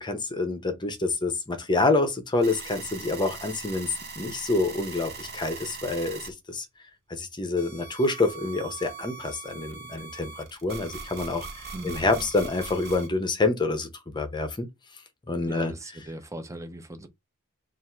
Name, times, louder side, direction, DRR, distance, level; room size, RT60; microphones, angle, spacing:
voice 1, 0.0-6.7 7.1-13.9 14.1-14.7 15.3-15.7, left 3 dB, 20° left, 0.8 m, -27 dB
sound 1, 2.4-6.3 7.6-13.1, right 4 dB, 45° right, 1.1 m, -41 dB
voice 2, 11.7-12.2 15.5-17.1, right 1 dB, 15° right, 0.6 m, -39 dB
3.5 x 2.5 x 4.4 m
head